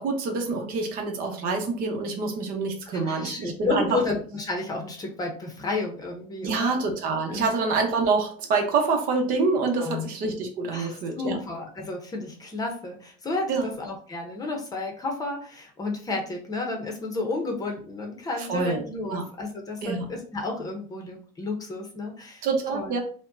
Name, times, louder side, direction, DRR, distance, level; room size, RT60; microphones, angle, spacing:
voice 1, 0.0-4.0 6.4-11.4 13.5-13.7 18.5-19.2 19.8-20.1 22.4-23.0, right 4 dB, 55° right, 3 dB, 0.9 m, -26 dB
voice 2, 2.9-6.8 7.3-7.5 9.8-10.1 10.7-22.4 22.7-23.0, left 3 dB, 20° left, 2 dB, 0.8 m, -32 dB
5.0 x 2.2 x 2.6 m, 0.44 s
cardioid pair, 155°, 18 cm